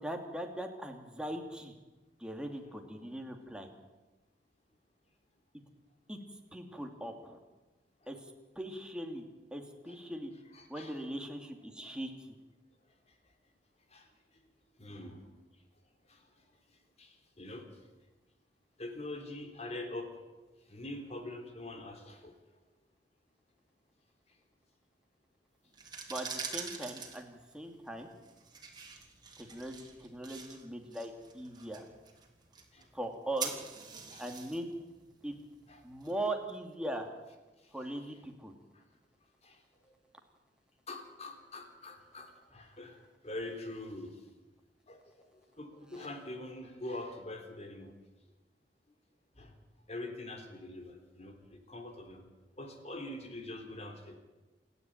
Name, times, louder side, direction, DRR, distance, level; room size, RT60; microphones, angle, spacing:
voice 1, 0.0-1.7 2.2-3.7 6.1-6.2 6.5-7.4 8.1-9.2 9.5-10.3 10.7-12.3 26.1-28.1 29.4-31.9 32.9-33.6 34.2-34.7 35.2-35.3 35.8-37.1 37.7-38.5 45.9-46.1, right 1 dB, 5° right, 3 dB, 2.6 m, -40 dB
voice 2, 10.5-10.9 11.8-11.9 13.9-14.1 14.8-15.3 16.1-16.3 17.0-17.7 18.8-20.1 20.7-22.3 29.5-29.6 32.7-32.9 34.1-34.2 35.7-35.8 37.6-37.7 38.7-38.8 39.4-39.6 39.8-39.9 40.9-44.2 44.9-47.9 49.4-49.6 49.9-52.2 52.6-54.1, left 2 dB, 40° left, 5 dB, 3.7 m, -44 dB
sound 1, 25.7-36.5, right 5 dB, 25° right, 3.4 m, -46 dB
28.0 x 11.0 x 9.2 m, 1.2 s
head